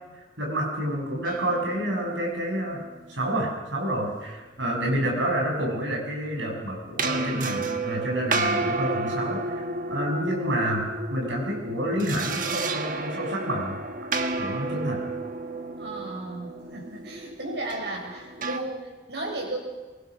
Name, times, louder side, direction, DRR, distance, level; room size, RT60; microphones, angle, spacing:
voice 1, 0.1-2.8 3.1-13.8 14.4-15.1, right 1 dB, 85° right, 0 dB, 6.9 m, -29 dB
sound 1, 1.2-3.3 7.0-18.6, right 3 dB, 45° right, 1.4 m, -31 dB
voice 2, 7.1-7.8 15.8-19.6, right 2 dB, 65° right, 0 dB, 6.8 m, -35 dB
23.5 x 23.5 x 6.1 m, 1.2 s
head